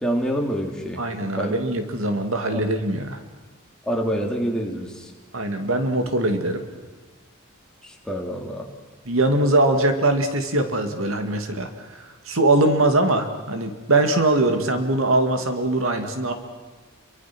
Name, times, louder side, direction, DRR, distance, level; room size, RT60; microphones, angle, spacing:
voice 1, 0.0-1.0 1.4-1.6 3.9-5.1 7.8-8.7, equal, 5° left, 0 dB, 3.0 m, -26 dB
voice 2, 1.0-3.2 5.3-6.6 9.1-11.7 12.3-16.3, right 2 dB, 75° right, 6 dB, 2.4 m, -21 dB
29.0 x 23.5 x 6.2 m, 1.2 s
head